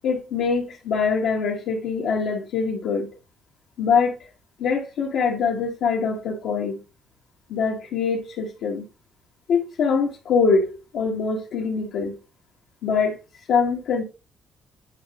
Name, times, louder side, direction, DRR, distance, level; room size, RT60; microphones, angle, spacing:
voice 1, 0.0-3.1 3.8-4.2 4.6-6.8 7.5-8.8 9.5-12.2 12.8-13.2 13.5-14.0, left 5 dB, 85° left, 1.4 m, -23 dB
9.1 x 4.6 x 3.6 m
cardioid pair, 90°, 0 cm